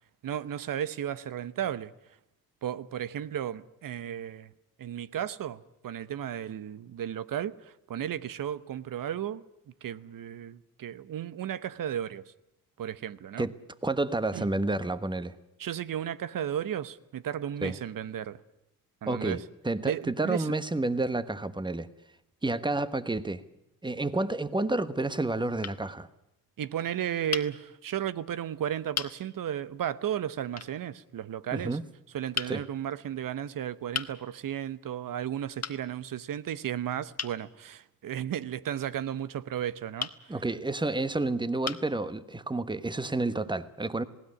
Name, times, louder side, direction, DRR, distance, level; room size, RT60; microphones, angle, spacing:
voice 1, 0.2-1.9 2.6-4.5 4.8-9.4 9.8-12.3 12.8-13.5 14.3-14.5 15.6-18.4 19.0-19.4 19.8-20.5 26.6-31.8 32.1-40.4, right 10 dB, 60° right, 0.9 m, -34 dB
voice 2, 13.8-15.3 17.6-17.8 19.1-21.9 22.4-23.4 23.8-26.1 31.5-31.8 32.5-32.6 40.3-44.0, right 2 dB, 10° right, 1.2 m, -30 dB
sound 1, 25.6-25.8 27.3-27.5 28.3-28.4 28.9-29.2 30.6-30.7 32.3-32.6 33.9-34.2 35.6-35.8 37.2-37.4 40.0-40.2 41.0-41.1 41.6-41.9, left 6 dB, 40° left, 1.5 m, -35 dB
19.5 x 16.5 x 9.8 m
supercardioid pair, 60°, 37 cm